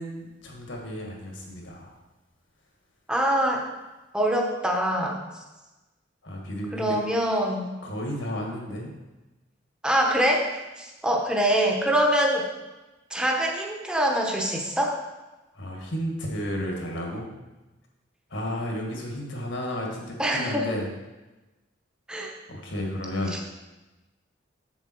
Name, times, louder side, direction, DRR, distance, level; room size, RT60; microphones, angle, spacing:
voice 1, 0.0-1.9 6.2-7.0 7.8-8.9 15.5-17.3 18.3-20.9 22.5-23.4, equal, 75° left, 0 dB, 1.9 m, -32 dB
voice 2, 3.1-3.6 4.1-5.2 6.7-7.7 9.8-12.4 13.1-15.0 20.2-20.7 22.1-22.3, right 1 dB, 5° right, -1 dB, 0.9 m, -24 dB
7.1 x 7.0 x 4.5 m, 1.1 s
head